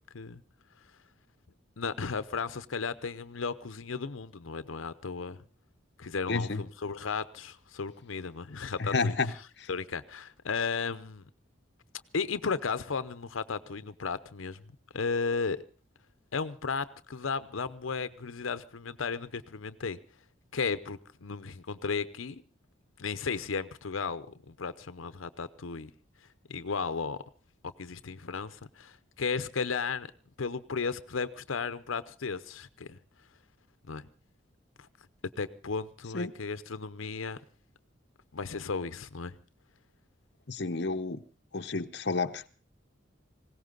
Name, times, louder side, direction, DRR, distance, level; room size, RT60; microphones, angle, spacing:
voice 1, 1.8-5.4 6.0-9.1 9.7-11.2 12.1-14.6 14.9-15.6 16.3-20.0 20.5-22.4 23.0-25.9 26.5-27.2 27.6-30.1 30.4-33.0 33.9-34.1 34.8-34.9 35.4-37.4 38.3-39.4, left 5 dB, 85° left, 0.7 m, -34 dB
voice 2, 6.3-6.6 8.8-9.3 9.6-9.7 36.1-36.3 40.5-41.2 41.5-42.5, left 3 dB, 55° left, 0.8 m, -30 dB
20.0 x 17.5 x 3.9 m
head